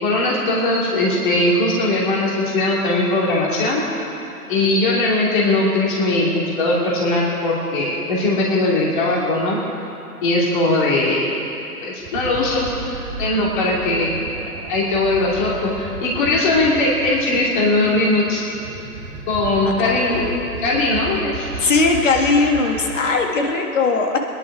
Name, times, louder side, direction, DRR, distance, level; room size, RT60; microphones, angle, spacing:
voice 1, 0.0-3.8 4.5-9.6 10.2-11.3 11.8-12.7 13.2-18.4 19.3-20.2 20.6-21.6, left 2 dB, 30° left, -4 dB, 2.8 m, -19 dB
sound 1, 12.0-23.1, right 3 dB, 25° right, 2.5 m, -33 dB
voice 2, 19.6-20.5 21.6-24.2, left 4 dB, 50° left, 2 dB, 2.0 m, -19 dB
20.5 x 11.0 x 4.9 m, 2.8 s
hypercardioid pair, 150°, 47 cm